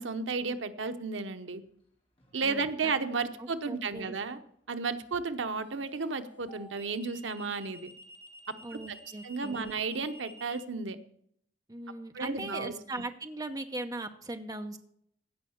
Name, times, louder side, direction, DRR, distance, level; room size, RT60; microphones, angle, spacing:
voice 1, 0.0-1.6 2.3-4.4 4.7-7.9 8.7-9.0 9.2-11.0 12.1-12.7, right 4 dB, 85° right, 10 dB, 0.9 m, -33 dB
sound 1, 2.2-2.5 5.5-10.6, left 1 dB, 30° left, 2.5 m, -52 dB
voice 2, 2.4-2.9 3.4-4.2 8.6-9.8 11.7-14.8, right 2 dB, 20° right, 6 dB, 0.8 m, -39 dB
16.0 x 5.7 x 7.0 m, 0.68 s
head